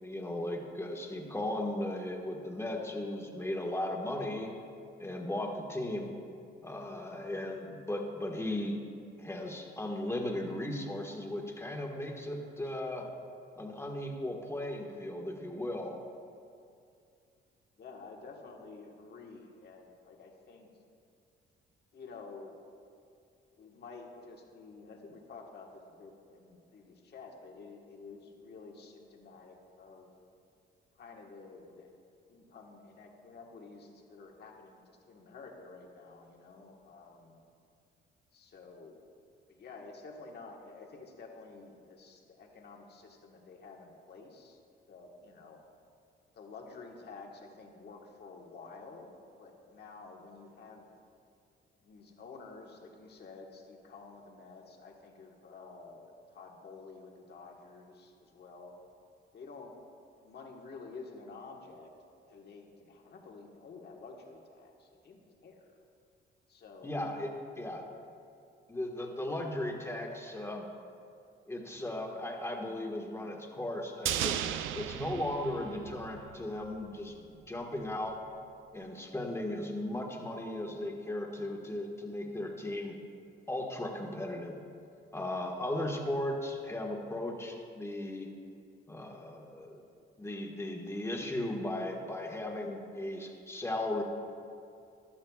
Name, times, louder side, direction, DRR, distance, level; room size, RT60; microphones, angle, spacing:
voice 1, 0.0-4.5 5.0-6.1 6.6-8.8 9.2-13.1 13.5-16.0 66.8-67.9 68.7-70.6 71.5-74.4 74.7-78.2 78.7-83.0 83.5-84.6 85.1-88.3 88.9-89.8 90.2-94.0, left 1 dB, 15° left, 0 dB, 1.4 m, -36 dB
voice 2, 17.8-20.7 21.9-22.8 23.6-30.1 31.0-31.9 32.3-37.4 38.3-39.0 39.5-44.6 44.9-45.6 46.3-50.9 51.8-58.7 59.3-59.8 60.2-61.9 62.3-65.7 66.5-67.2, left 4 dB, 55° left, 1 dB, 1.5 m, -50 dB
sound 1, 74.1-76.4 76.7-76.8, right 10 dB, 90° right, 0.5 m, -35 dB
14.5 x 11.5 x 2.4 m, 2.5 s
cardioid pair, 90°, 20 cm